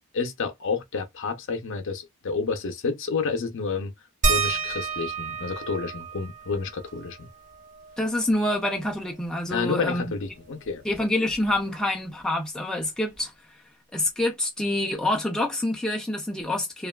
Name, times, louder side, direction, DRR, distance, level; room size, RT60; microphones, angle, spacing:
voice 1, 0.1-3.9 4.3-7.3 9.5-10.8, left 4 dB, 60° left, 0.6 m, -30 dB
sound 1, 4.2-9.4 9.7-9.8 10.1-11.9 13.2-13.3 14.0-14.1, right 4 dB, 35° right, 0.7 m, -32 dB
voice 2, 8.0-10.0 10.8-13.3 13.9-16.9, left 1 dB, 5° left, 0.4 m, -26 dB
3.0 x 2.3 x 2.2 m
head